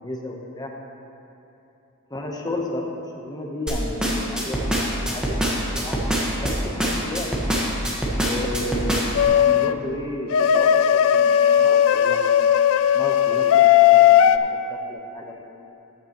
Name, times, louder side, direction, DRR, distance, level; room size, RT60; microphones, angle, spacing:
voice 1, 0.0-0.7 2.1-5.5 5.7-6.0 6.4-7.3 8.2-8.9 9.3-12.5 12.9-15.4, left 1 dB, 20° left, 0 dB, 0.9 m, -33 dB
sound 1, 3.7-9.2, equal, 5° right, 1.2 m, -24 dB
sound 2, 9.2-9.7 10.3-14.4, left 10 dB, 65° left, 0.3 m, -16 dB
14.0 x 9.0 x 3.0 m, 2.9 s
head